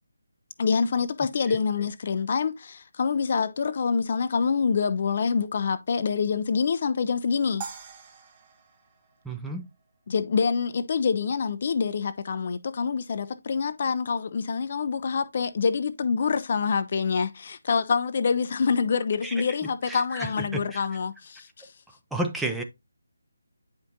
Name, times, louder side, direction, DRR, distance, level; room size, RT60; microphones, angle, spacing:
voice 1, 0.6-7.7 10.1-21.5, left 5 dB, 45° left, 0.5 m, -26 dB
sound 1, 7.6-10.0, right 6 dB, 25° right, 1.0 m, -43 dB
voice 2, 9.2-9.6 19.2-19.3 19.9-20.8 22.1-22.6, right 2 dB, 5° right, 0.6 m, -31 dB
9.0 x 5.1 x 2.6 m
figure-of-eight pair, 155°, 0 cm